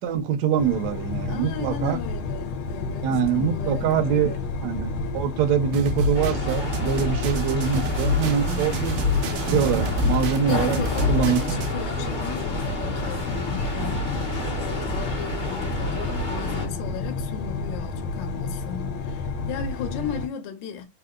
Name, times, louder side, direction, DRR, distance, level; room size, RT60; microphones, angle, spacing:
voice 1, 0.0-2.0 3.0-4.3 4.6-9.0 9.5-10.8 11.1-11.4, right 7 dB, 65° right, 1.1 m, -24 dB
sound 1, 0.6-20.3, left 3 dB, 90° left, 1.5 m, -31 dB
voice 2, 1.2-4.5 10.5-20.8, left 8 dB, 70° left, 1.4 m, -36 dB
sound 2, 5.7-11.7, left 1 dB, 90° right, 1.5 m, -27 dB
sound 3, 6.1-16.7, equal, 45° left, 0.6 m, -31 dB
3.7 x 2.7 x 2.2 m
omnidirectional pair, 2.2 m